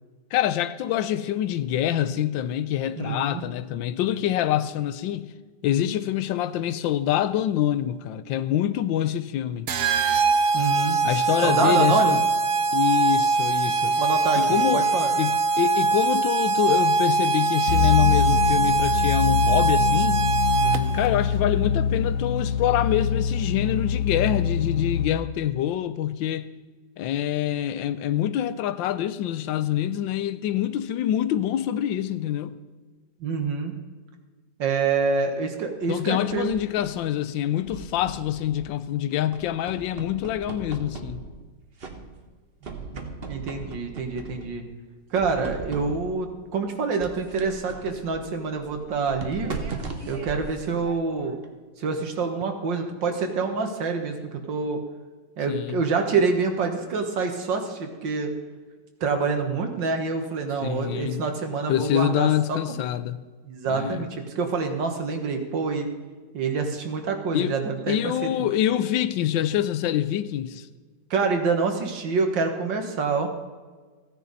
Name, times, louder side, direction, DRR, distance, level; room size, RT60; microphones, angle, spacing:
voice 1, 0.3-5.3 5.6-9.7 11.0-12.2 12.7-14.0 14.4-14.9 15.2-20.2 20.9-26.5 27.0-32.5 35.9-41.3 55.5-55.8 60.6-61.2 61.7-63.2 63.7-64.0 67.3-67.6 67.9-70.7, left 11 dB, 85° left, 1.4 m, -25 dB
voice 2, 3.0-3.4 10.5-11.0 11.4-12.2 13.8-15.1 20.6-21.0 33.2-33.7 34.6-36.6 42.9-44.7 45.1-49.6 50.1-51.4 51.8-54.8 55.4-58.3 59.0-62.6 63.4-65.9 66.3-68.0 68.2-68.3 71.1-73.3, right 4 dB, 75° right, 2.0 m, -26 dB
sound 1, 9.7-21.1, right 4 dB, 60° right, 0.9 m, -22 dB
sound 2, 17.7-25.1, left 7 dB, 55° left, 1.3 m, -24 dB
sound 3, 35.8-37.0 37.6-38.9 39.3-41.5 41.8-42.4 42.6-44.6 45.1-46.2 47.0-51.5, right 3 dB, 35° right, 1.2 m, -39 dB
15.5 x 10.0 x 4.1 m
omnidirectional pair, 2.0 m